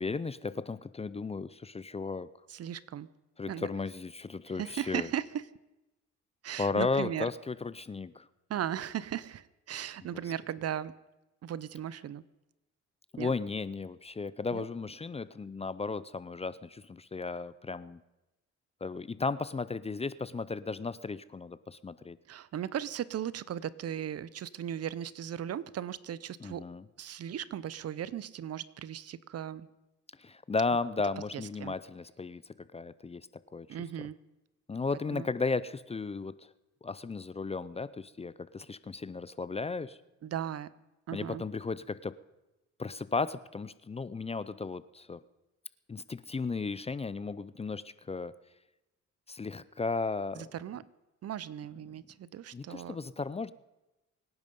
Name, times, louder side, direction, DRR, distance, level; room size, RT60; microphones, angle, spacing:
voice 1, 0.0-2.3 3.4-5.1 6.6-8.3 13.1-18.0 18.8-22.2 26.4-26.8 30.2-33.3 33.5-33.7 34.0-34.1 34.7-36.5 36.8-40.0 41.1-42.2 42.8-45.2 45.9-48.3 49.3-50.5 52.5-53.5, left 4 dB, 20° left, 17 dB, 0.5 m, -35 dB
voice 2, 2.5-3.1 3.5-3.7 4.5-5.4 6.4-7.3 8.5-10.9 11.4-12.2 13.2-13.3 14.5-14.6 22.3-26.6 27.0-29.7 31.3-31.7 33.7-34.2 35.1-35.3 40.2-40.7 41.1-41.4 50.3-50.8 51.2-53.0, right 10 dB, 55° right, 19 dB, 0.7 m, -37 dB
24.5 x 10.5 x 5.4 m, 1.0 s
cardioid pair, 90°, 30 cm